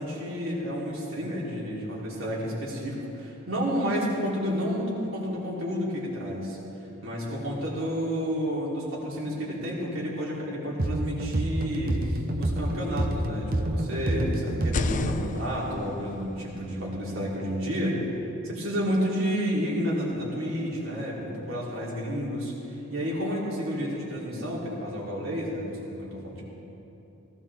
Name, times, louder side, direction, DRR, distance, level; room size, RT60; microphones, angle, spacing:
voice 1, 0.0-6.6 7.0-18.0 18.4-26.4, equal, 75° right, -5 dB, 4.0 m, -30 dB
sound 1, 10.8-15.3, right 1 dB, 45° right, 1.0 m, -28 dB
sound 2, 14.6-18.4, left 5 dB, 40° left, 0.4 m, -37 dB
19.0 x 17.5 x 3.7 m, 2.9 s
head